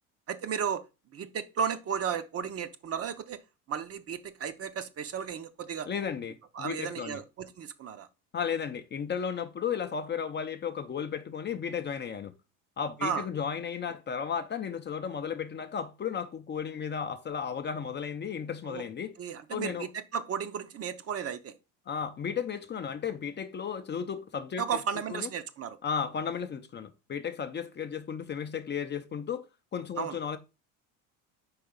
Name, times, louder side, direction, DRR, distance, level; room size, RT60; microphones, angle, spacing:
voice 1, 0.3-0.8 1.1-3.4 3.7-5.9 6.5-8.1 13.0-13.2 18.6-18.8 19.2-21.5 24.6-25.8 30.0-30.2, right 7 dB, 35° right, 0.7 m, -34 dB
voice 2, 5.9-7.2 8.3-12.3 12.8-19.1 19.5-19.9 21.9-24.6 25.1-25.3 25.8-29.5 29.7-30.4, left 7 dB, 25° left, 0.6 m, -34 dB
4.9 x 3.8 x 5.0 m
supercardioid pair, 85°, 40 cm